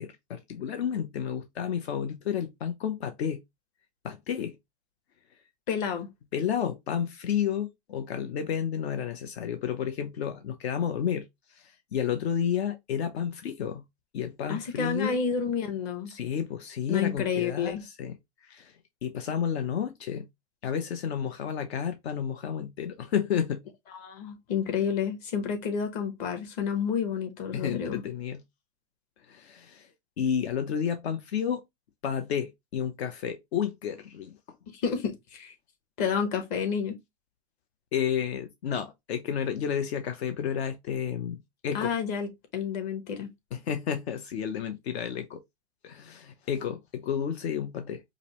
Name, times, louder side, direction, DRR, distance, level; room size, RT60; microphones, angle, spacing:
voice 1, 0.0-3.4 4.0-4.6 6.3-13.8 14.1-15.2 16.1-18.1 18.4-18.7 19.0-20.3 20.6-23.6 27.5-28.4 29.3-29.9 30.2-31.6 32.0-34.3 37.9-41.9 43.5-45.4 45.8-48.0, left 8 dB, 65° left, 0.8 m, -31 dB
voice 2, 5.7-6.1 14.5-16.1 16.9-17.8 23.9-28.0 34.7-35.5 36.0-37.0 41.7-43.3, left 6 dB, 35° left, 1.0 m, -30 dB
5.0 x 2.0 x 2.9 m
supercardioid pair, 155°, 34 cm